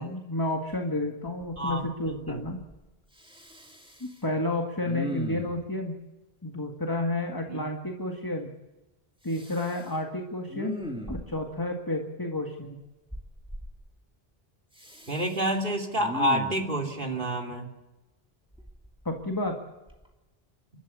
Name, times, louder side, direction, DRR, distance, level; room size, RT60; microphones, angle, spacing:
voice 1, 0.0-2.6 4.0-5.9 6.4-8.5 9.2-10.8 11.1-12.8 19.1-19.6, left 1 dB, 20° left, 2 dB, 1.9 m, -31 dB
Respiratory sounds, 0.7-0.8 1.2-1.8 2.0-2.8 3.2-4.2 4.8-5.7 9.3-9.9 10.5-11.5 13.1-13.7 14.7-15.4 16.0-16.7 18.5-19.5 19.9-20.1, equal, 5° right, 2.6 m, -39 dB
voice 2, 1.6-2.4 7.5-7.7 15.0-17.7, right 1 dB, 55° right, 2 dB, 3.1 m, -29 dB
30.0 x 12.5 x 8.4 m, 1.1 s
omnidirectional pair, 1.0 m